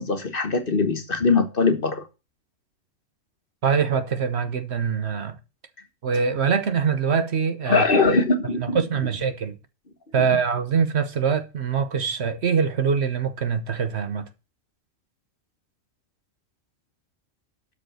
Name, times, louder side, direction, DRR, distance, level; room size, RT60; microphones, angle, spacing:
voice 1, 0.0-2.0 7.7-8.8, left 4 dB, 45° left, 1.4 m, -21 dB
voice 2, 3.6-5.4 6.0-7.8 8.6-9.6 10.1-14.3, right 6 dB, 60° right, 1.2 m, -24 dB
12.5 x 5.2 x 6.3 m
omnidirectional pair, 1.3 m